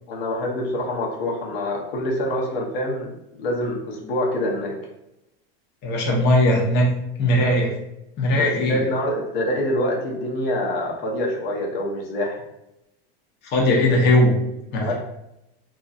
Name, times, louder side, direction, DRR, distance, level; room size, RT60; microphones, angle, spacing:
voice 1, 0.1-4.7 8.3-12.4 14.8-14.9, left 1 dB, 80° left, -1 dB, 0.9 m, -26 dB
voice 2, 5.8-6.9 7.2-7.8 8.2-8.8 13.5-14.3 14.7-14.9, left 1 dB, 35° left, -3 dB, 0.8 m, -19 dB
2.9 x 2.7 x 2.5 m, 0.87 s
supercardioid pair, 135°, 30 cm